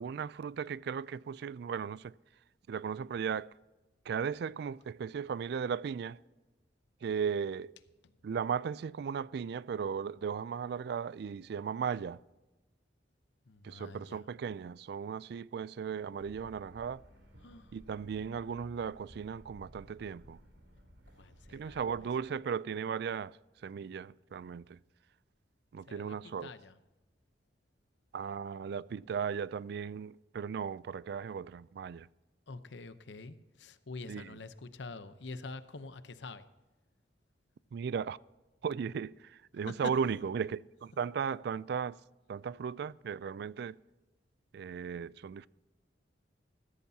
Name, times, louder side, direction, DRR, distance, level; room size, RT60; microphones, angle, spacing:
voice 1, 0.0-2.1 2.7-3.5 4.1-6.2 7.0-7.7 8.2-12.2 13.6-17.0 17.7-20.4 21.5-23.4 23.6-24.8 25.7-26.5 28.1-32.1 34.1-34.4 37.7-38.2 38.6-42.0 42.3-43.8 44.5-45.5, right 6 dB, 60° right, 0.3 m, -36 dB
voice 2, 13.5-14.2 17.4-17.7 21.2-21.8 25.9-26.2 26.4-26.7 32.5-36.4 39.7-39.8, left 3 dB, 75° left, 0.8 m, -46 dB
sound 1, 16.2-22.2, equal, 90° right, 3.4 m, -57 dB
15.0 x 14.0 x 2.8 m
head